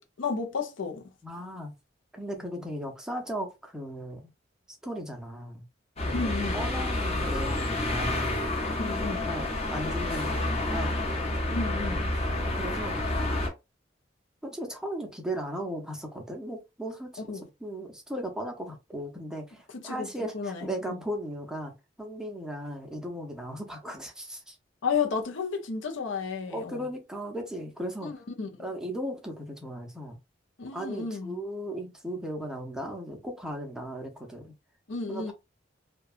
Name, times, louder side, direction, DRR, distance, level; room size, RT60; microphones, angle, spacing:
voice 1, 0.0-1.1 6.1-6.7 8.7-9.3 11.5-12.1 17.3-17.5 19.7-21.0 24.8-26.9 28.0-28.5 30.6-31.4 34.9-35.3, left 5 dB, 75° left, 0.6 m, -33 dB
voice 2, 1.2-1.7 2.1-4.3 4.8-5.6 6.1-8.3 9.2-12.0 12.5-13.0 14.4-21.7 22.0-24.6 26.5-28.1 28.6-30.2 30.7-34.5 35.1-35.3, equal, 5° right, 0.5 m, -37 dB
sound 1, 6.0-13.5, left 1 dB, 35° left, 0.7 m, -29 dB
2.7 x 2.2 x 2.4 m
head